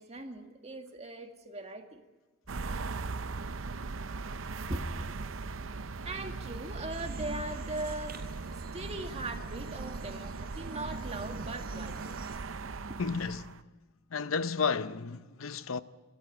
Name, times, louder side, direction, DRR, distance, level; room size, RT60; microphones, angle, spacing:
voice 1, 0.0-2.0 4.7-5.2 6.1-8.3 8.7-12.2 12.9-13.0, right 2 dB, 30° right, 1.9 m, -40 dB
sound 1, 2.5-13.6, right 3 dB, 70° right, 0.7 m, -39 dB
sound 2, 6.9-12.4, right 4 dB, 50° right, 4.3 m, -52 dB
voice 2, 13.0-13.6 14.1-15.8, left 5 dB, 80° left, 0.7 m, -32 dB
25.5 x 13.0 x 9.9 m
head